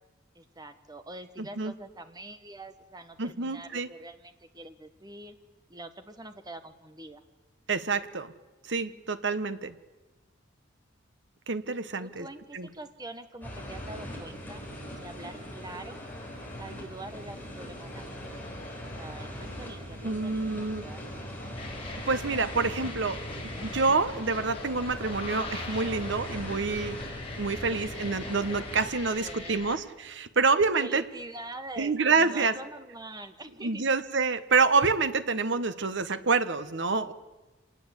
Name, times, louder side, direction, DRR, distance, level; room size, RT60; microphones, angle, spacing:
voice 1, 0.3-5.4 5.7-7.2 12.0-14.6 15.0-16.0 16.6-18.3 18.9-21.5 29.0-29.8 30.8-34.0, right 2 dB, 20° right, 8 dB, 1.6 m, -45 dB
voice 2, 3.2-3.9 7.7-8.3 8.6-9.7 11.5-12.3 12.5-12.7 20.0-20.9 22.0-23.2 23.6-27.0 27.4-31.0 31.8-32.5 33.6-37.1, right 4 dB, 65° right, 12 dB, 1.2 m, -27 dB
sound 1, 13.4-28.9, equal, 10° left, 6.0 m, -40 dB
sound 2, 21.6-29.8, left 3 dB, 30° left, 4.0 m, -42 dB
27.0 x 19.5 x 8.3 m, 1.2 s
head